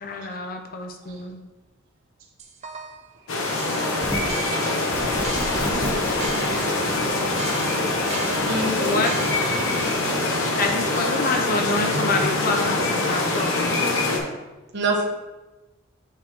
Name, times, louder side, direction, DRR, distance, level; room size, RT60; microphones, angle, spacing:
voice 1, 0.0-1.4 8.8-9.1 10.6-13.7, left 3 dB, 45° left, 4 dB, 0.7 m, -27 dB
sound 1, 2.4-3.1 3.6-6.9 7.4-9.9, right 3 dB, 35° right, 0.6 m, -36 dB
sound 2, 3.3-14.2, left 2 dB, 80° left, 1.0 m, -24 dB
voice 2, 3.3-3.7 8.5-9.0 11.9-12.2 14.7-15.0, right 2 dB, 60° right, -1 dB, 1.3 m, -26 dB
sound 3, 4.0-4.4 4.9-10.2, equal, 10° left, 0.5 m, -34 dB
voice 3, 5.1-6.8 9.9-10.6 10.9-11.4 13.7-14.2, right 3 dB, 80° right, -2 dB, 1.5 m, -42 dB
8.3 x 3.5 x 3.5 m, 1.1 s
head